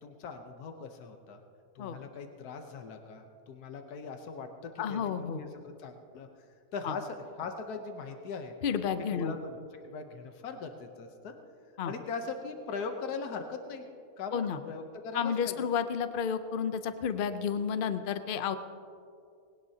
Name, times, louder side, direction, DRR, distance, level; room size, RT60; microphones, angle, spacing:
voice 1, 0.0-1.4 1.7-6.3 6.7-8.5 9.1-11.4 11.8-13.8 14.2-15.5, left 4 dB, 80° left, 5 dB, 1.4 m, -40 dB
voice 2, 4.8-5.4 6.8-6.9 8.6-9.3 11.8-11.9 14.3-14.6 15.1-18.6, left 7 dB, 50° left, 10 dB, 0.7 m, -31 dB
20.0 x 17.5 x 2.8 m, 2.4 s
omnidirectional pair, 1.6 m